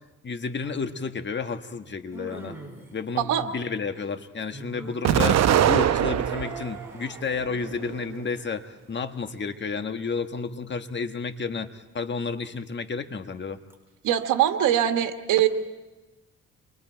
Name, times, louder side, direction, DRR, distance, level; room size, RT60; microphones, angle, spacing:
voice 1, 0.2-2.6 2.9-13.6, left 5 dB, 35° left, 8 dB, 1.4 m, -31 dB
sound 1, 0.6-0.7 2.1-2.9 4.5-7.3 13.7-13.8, right 1 dB, 10° right, 4.7 m, -41 dB
Explosion, 5.0-6.7 7.2-8.1, right 10 dB, 60° right, 0.8 m, -22 dB
voice 2, 14.0-15.5, right 11 dB, 85° right, 6 dB, 1.6 m, -22 dB
28.5 x 24.0 x 4.5 m, 1.1 s
cardioid pair, 90°, 30 cm